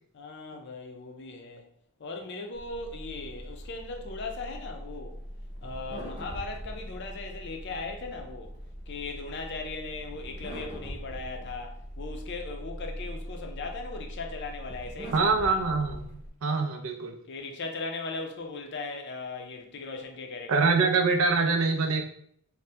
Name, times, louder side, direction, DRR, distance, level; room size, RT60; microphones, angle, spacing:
voice 1, 0.1-1.6 2.0-5.2 5.6-8.5 8.9-15.6 17.3-20.9, left 3 dB, 50° left, 0.4 m, -38 dB
sound 1, 2.5-16.3, equal, 30° right, 0.8 m, -41 dB
voice 2, 15.1-17.1 20.5-22.0, right 4 dB, 65° right, 0.4 m, -25 dB
2.7 x 2.1 x 3.2 m
head